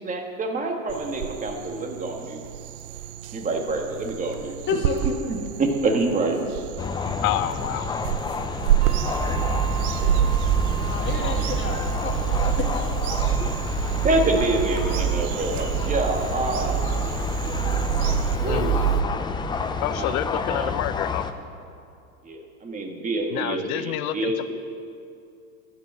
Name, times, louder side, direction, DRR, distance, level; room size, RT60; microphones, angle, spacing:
voice 1, 0.0-2.4 3.3-4.6 5.3-6.4 14.0-16.9 18.4-18.8 20.0-20.2 20.5-20.7 22.2-24.5, right 2 dB, 20° right, 3 dB, 1.6 m, -26 dB
sound 1, 0.9-18.4, right 12 dB, 85° right, 0.7 m, -32 dB
voice 2, 4.7-5.2 10.7-12.9, left 4 dB, 25° left, 2 dB, 1.8 m, -30 dB
sound 2, 6.8-21.3, left 5 dB, 10° left, 0.4 m, -30 dB
voice 3, 7.2-7.9 11.2-11.4 18.4-18.8 19.8-21.2 23.3-24.5, left 13 dB, 80° left, 13 dB, 0.7 m, -28 dB
Bird vocalization bird call bird song / Telephone, 8.8-19.0, right 8 dB, 50° right, 1.1 m, -25 dB
12.5 x 7.9 x 7.5 m, 2.5 s
supercardioid pair, 125°, 42 cm